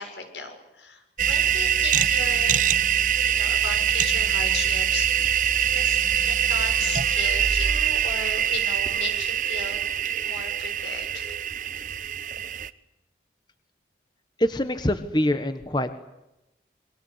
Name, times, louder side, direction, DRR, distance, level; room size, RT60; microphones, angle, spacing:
voice 1, 0.0-2.5 3.2-5.4 5.7-11.3, left 4 dB, 85° left, 6 dB, 6.5 m, -36 dB
sound 1, 1.2-12.7, right 9 dB, 45° right, 1.0 m, -23 dB
voice 2, 14.4-15.9, left 1 dB, 25° left, 10 dB, 1.4 m, -24 dB
28.0 x 23.5 x 8.2 m, 0.91 s
head